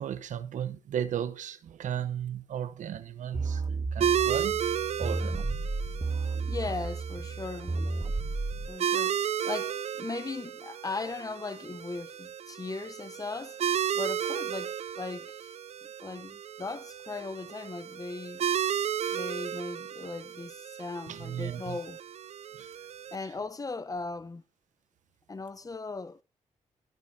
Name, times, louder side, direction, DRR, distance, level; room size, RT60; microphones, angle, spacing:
voice 1, 0.0-3.6 3.9-4.6 5.0-5.6 21.1-21.8 22.5-22.8, right 9 dB, 80° right, 0.9 m, -35 dB
sound 1, 3.3-8.7, right 3 dB, 25° right, 1.6 m, -32 dB
sound 2, 4.0-23.2, right 9 dB, 60° right, 0.5 m, -34 dB
voice 2, 6.5-7.8 8.7-13.6 13.9-15.5 16.0-18.5 19.1-22.0 23.1-24.4 25.3-26.2, left 3 dB, 30° left, 0.8 m, -38 dB
16.0 x 9.5 x 2.7 m
cardioid pair, 65°, 13 cm